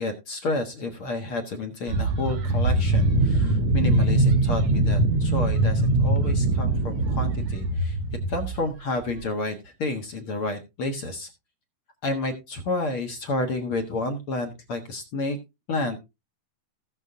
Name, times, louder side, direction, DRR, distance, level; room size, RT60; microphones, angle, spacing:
voice 1, 0.0-8.0 8.3-11.3 12.0-15.4 15.7-16.0, left 2 dB, 55° left, 4 dB, 1.6 m, -30 dB
sound 1, 1.9-8.7 9.1-9.2, right 2 dB, 60° right, 2.1 m, -22 dB
18.0 x 6.4 x 2.7 m, 0.24 s
omnidirectional pair, 4.2 m